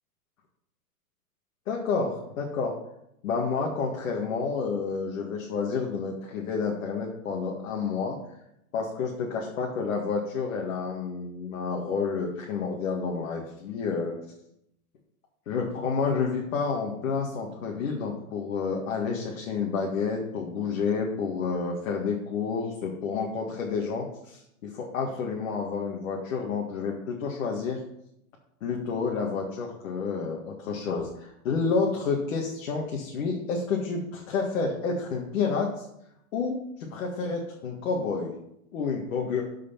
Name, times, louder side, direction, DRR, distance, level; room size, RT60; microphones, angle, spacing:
voice 1, 1.7-2.7 3.2-8.2 8.7-14.2 15.5-27.8 28.6-35.9 36.3-38.3 38.7-39.4, left 5 dB, 55° left, -1 dB, 1.9 m, -29 dB
12.5 x 5.0 x 5.8 m, 0.80 s
hypercardioid pair, 160°, 46 cm